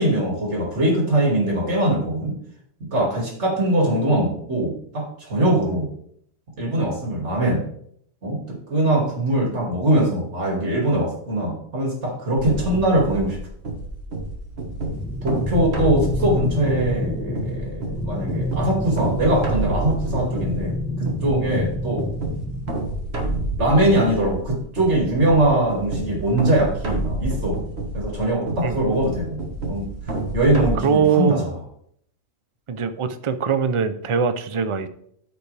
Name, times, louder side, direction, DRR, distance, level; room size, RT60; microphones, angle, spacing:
voice 1, 0.0-2.3 2.8-5.9 6.6-7.6 8.2-13.4 15.2-22.1 23.6-27.6 27.9-29.4 29.7-29.9 30.3-31.5, right 1 dB, 85° right, -1 dB, 2.7 m, -22 dB
sound 1, 12.4-30.7, right 1 dB, 65° right, 1.8 m, -29 dB
sound 2, 14.8-22.8, left 2 dB, 10° left, 0.7 m, -29 dB
voice 2, 30.8-31.4 32.7-34.9, right 6 dB, 35° right, 10 dB, 0.5 m, -22 dB
13.5 x 5.2 x 3.4 m, 0.67 s
omnidirectional pair, 1.2 m